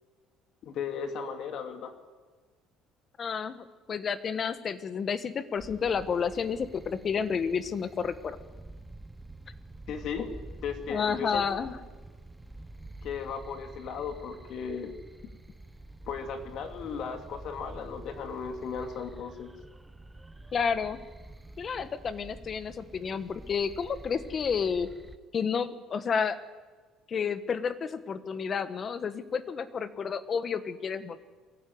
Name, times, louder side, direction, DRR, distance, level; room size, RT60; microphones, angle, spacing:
voice 1, 0.6-1.9 9.9-10.3 10.6-11.4 13.0-14.9 16.1-19.5, left 6 dB, 55° left, 5 dB, 2.7 m, -36 dB
voice 2, 3.2-8.4 10.9-11.8 20.5-21.0 21.6-24.9 25.3-26.4 27.1-31.2, left 6 dB, 35° left, 12 dB, 1.3 m, -30 dB
sound 1, 5.6-25.2, right 2 dB, 5° right, 0.8 m, -48 dB
22.5 x 15.0 x 9.5 m, 1.4 s
cardioid pair, 140°, 0 cm